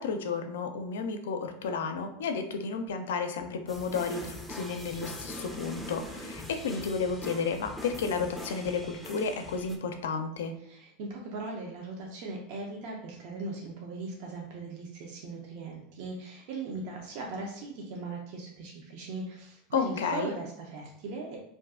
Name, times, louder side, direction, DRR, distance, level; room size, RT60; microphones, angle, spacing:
voice 1, 0.0-10.5 19.7-20.3, left 5 dB, 90° left, 6 dB, 0.4 m, -32 dB
sound 1, 3.7-9.8, left 1 dB, ahead, 0.5 m, -42 dB
voice 2, 10.6-21.4, right 3 dB, 65° right, -1 dB, 0.6 m, -39 dB
2.5 x 2.3 x 3.5 m, 0.72 s
supercardioid pair, 120°, 0 cm